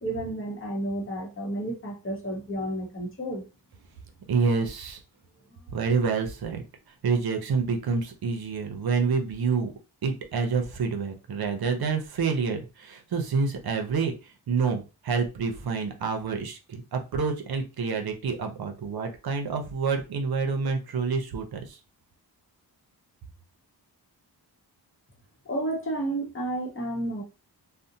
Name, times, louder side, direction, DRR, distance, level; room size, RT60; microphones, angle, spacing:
voice 1, 0.0-3.4 5.5-5.6 25.4-27.2, right 1 dB, 30° left, 0.8 m, -31 dB
voice 2, 4.3-5.0 5.7-6.6 7.0-9.7 10.0-21.8, right 5 dB, 65° right, 0.6 m, -28 dB
2.6 x 2.1 x 2.6 m
cardioid pair, 80°, 40 cm